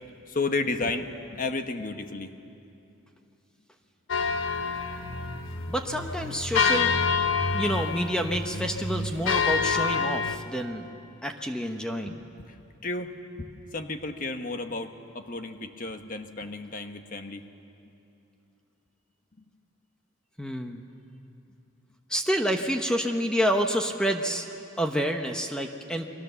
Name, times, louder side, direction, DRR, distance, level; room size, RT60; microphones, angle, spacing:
voice 1, 0.3-2.3 7.2-7.3 7.6-7.9 12.1-13.1 13.4-17.4, left 3 dB, 40° left, 7 dB, 1.3 m, -33 dB
sound 1, 4.1-10.4, left 5 dB, 70° left, 1.3 m, -27 dB
voice 2, 5.7-6.9 7.5-10.9 11.2-12.2 20.4-20.8 22.1-24.5 24.8-26.1, equal, 5° left, 4 dB, 1.0 m, -28 dB
29.5 x 23.5 x 7.0 m, 2.7 s
head